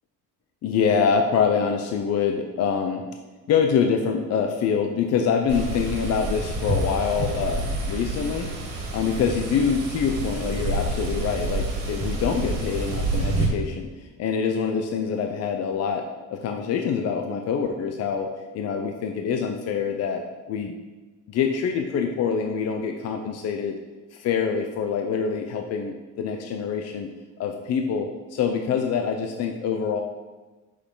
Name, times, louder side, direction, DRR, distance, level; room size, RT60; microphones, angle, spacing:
voice 1, 0.6-3.1 3.5-8.5 8.9-16.0 16.3-18.3 18.5-20.7 21.3-23.8 24.1-27.1 27.4-30.0, left 6 dB, 50° left, 4 dB, 0.6 m, -25 dB
sound 1, 5.5-13.5, right 2 dB, 65° right, 2.0 m, -28 dB
6.3 x 5.7 x 3.8 m, 1.2 s
cardioid pair, 155°, 32 cm